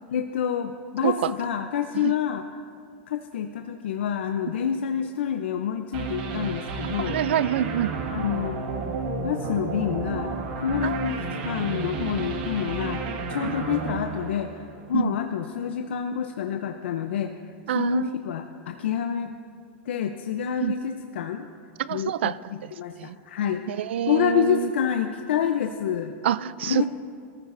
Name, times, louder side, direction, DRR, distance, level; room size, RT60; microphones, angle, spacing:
voice 1, 0.1-2.4 3.1-7.2 8.1-8.6 9.2-10.4 10.6-13.0 13.3-17.3 17.7-19.3 19.9-21.5 21.9-22.3 22.7-23.6 24.0-26.1 26.7-26.9, left 8 dB, 85° left, 6 dB, 0.6 m, -28 dB
sound 1, 5.9-15.0, right 4 dB, 55° right, 1.7 m, -31 dB
voice 2, 7.0-7.9 10.8-11.1 13.4-13.5 14.9-15.1 17.7-18.1 20.6-20.7 21.8-22.7 23.0-23.2 23.7-24.7 26.2-26.9, right 11 dB, 90° right, 18 dB, 0.4 m, -27 dB
22.0 x 14.5 x 2.6 m, 2.3 s
supercardioid pair, 160°, 6 cm